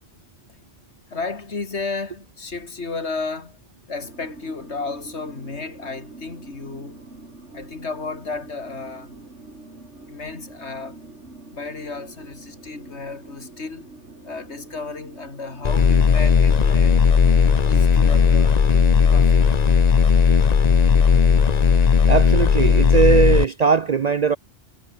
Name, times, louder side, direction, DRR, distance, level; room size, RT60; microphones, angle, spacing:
voice 1, 1.1-3.6 3.9-7.0 7.5-9.2 10.1-11.0 11.5-13.9 14.2-17.0 17.7-18.6 19.1-19.6, left 4 dB, 70° left, 2.7 m, -33 dB
sound 1, 4.0-19.8, right 2 dB, 80° right, 4.6 m, -44 dB
sound 2, 15.6-23.4, left 6 dB, 40° left, 0.8 m, -16 dB
voice 2, 22.1-24.4, right 6 dB, 50° right, 0.5 m, -19 dB
omnidirectional pair, 1.2 m